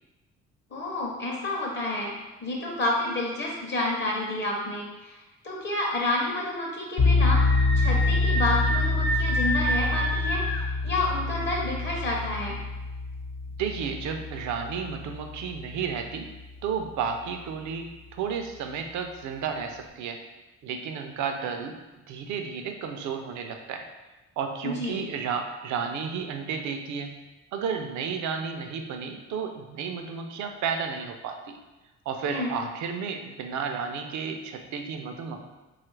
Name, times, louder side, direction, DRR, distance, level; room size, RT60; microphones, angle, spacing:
voice 1, 0.7-2.1 2.4-12.6 24.6-25.0 32.2-32.5, left 2 dB, 35° left, -2 dB, 0.6 m, -29 dB
sound 1, 7.0-15.8, left 3 dB, 70° left, 0.8 m, -26 dB
Screaming, 7.3-10.6, right 1 dB, 5° left, 0.3 m, -29 dB
voice 2, 13.6-16.3 16.6-17.9 18.1-20.2 20.6-21.7 22.1-23.8 24.4-27.1 27.5-31.6 32.1-35.4, right 6 dB, 70° right, 5 dB, 0.5 m, -32 dB
2.8 x 2.4 x 3.1 m, 1.1 s
cardioid pair, 90°, 30 cm